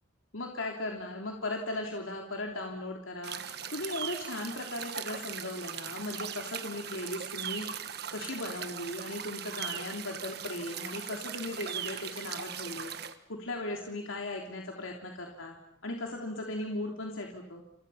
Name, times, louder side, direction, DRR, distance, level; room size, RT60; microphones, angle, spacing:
voice 1, 0.3-3.4 3.7-12.9 13.3-15.5 15.8-17.6, left 2 dB, 90° left, 1 dB, 3.4 m, -37 dB
sound 1, 3.2-13.1, right 8 dB, 50° right, 1.6 m, -39 dB
30.0 x 29.0 x 5.8 m, 0.77 s
head